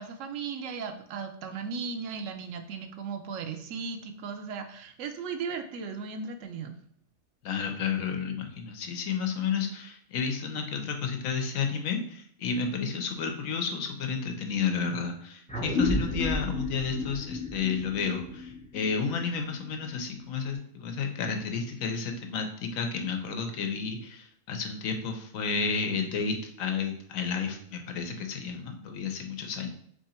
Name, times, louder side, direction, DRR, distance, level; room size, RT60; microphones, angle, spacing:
voice 1, 0.0-6.7, right 5 dB, 70° right, 7 dB, 0.9 m, -36 dB
voice 2, 7.4-29.7, left 5 dB, 80° left, 5 dB, 1.1 m, -31 dB
sound 1, 15.5-20.4, left 2 dB, 10° left, 0.4 m, -33 dB
3.8 x 3.3 x 4.2 m, 0.65 s
omnidirectional pair, 1.4 m